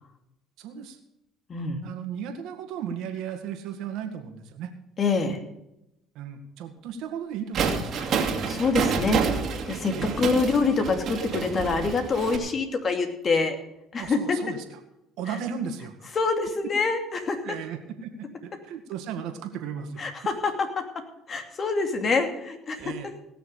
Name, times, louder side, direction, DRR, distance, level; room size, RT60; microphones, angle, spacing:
voice 1, 0.6-1.0 1.8-4.7 6.1-8.1 9.9-10.3 14.0-14.8 15.2-16.3 17.4-20.0 22.8-23.1, right 7 dB, 70° right, 5 dB, 2.0 m, -36 dB
voice 2, 1.5-1.8 5.0-5.4 8.0-8.1 8.5-9.2 9.7-13.6 13.9-14.4 15.3-15.4 16.1-17.4 20.0-22.8, left 4 dB, 40° left, 6 dB, 2.5 m, -26 dB
sound 1, 7.5-12.4, right 5 dB, 55° right, 2.3 m, -28 dB
17.5 x 6.7 x 6.7 m, 0.86 s
supercardioid pair, 80°, 0 cm